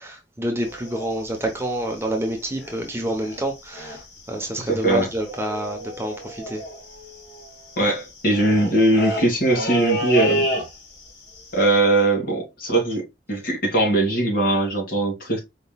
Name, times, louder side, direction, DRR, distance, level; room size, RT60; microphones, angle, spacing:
voice 1, 0.0-4.0 4.3-6.6, right 1 dB, 15° right, 0.8 m, -28 dB
sound 1, 0.6-2.9 3.2-3.4 3.7-4.2 4.5-4.6 4.7-11.1 11.4-11.6, right 1 dB, 80° left, 1.9 m, -30 dB
voice 2, 4.6-5.1 7.8-10.5 11.5-15.4, right 2 dB, 55° left, 2.0 m, -20 dB
4.7 x 3.7 x 2.2 m
head